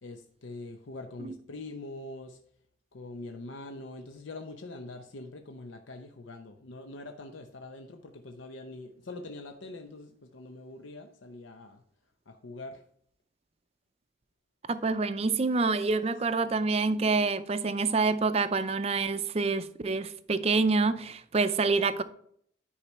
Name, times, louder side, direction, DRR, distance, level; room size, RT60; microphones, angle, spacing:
voice 1, 0.0-2.4 2.9-11.8 12.3-12.8 16.4-16.9, left 2 dB, 85° left, 0.7 m, -44 dB
voice 2, 14.7-22.0, right 4 dB, 35° right, 0.5 m, -27 dB
10.0 x 4.7 x 4.3 m
head